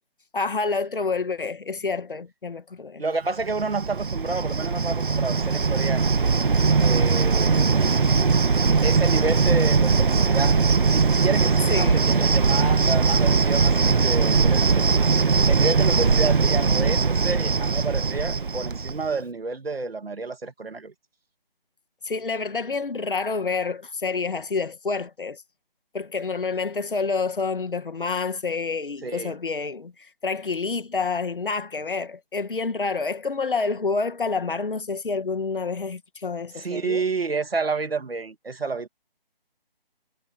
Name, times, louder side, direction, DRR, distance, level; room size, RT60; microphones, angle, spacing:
voice 1, 0.3-3.0 11.7-12.0 22.0-25.4 25.9-37.0, left 4 dB, 60° left, 2.0 m, -28 dB
voice 2, 3.0-6.1 6.8-7.8 8.8-10.6 10.8-14.8 15.5-20.9 29.0-29.3 36.5-38.9, right 3 dB, 80° right, 2.5 m, -29 dB
Cricket, 3.4-19.1, right 4 dB, 60° right, 1.5 m, -20 dB
figure-of-eight pair, 170°, 30 cm